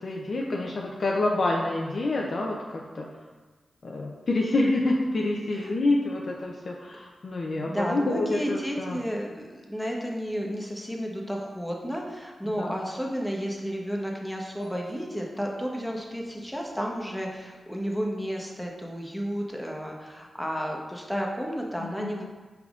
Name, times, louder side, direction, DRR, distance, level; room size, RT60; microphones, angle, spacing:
voice 1, 0.0-3.1 3.8-9.0 12.6-12.7 21.8-22.2, left 2 dB, 65° left, -1 dB, 0.4 m, -27 dB
voice 2, 7.6-22.2, equal, ahead, -1 dB, 0.8 m, -32 dB
sound 1, 14.6-18.3, left 1 dB, 90° left, 1.4 m, -52 dB
4.9 x 3.4 x 2.4 m, 1.3 s
cardioid pair, 45°, 0 cm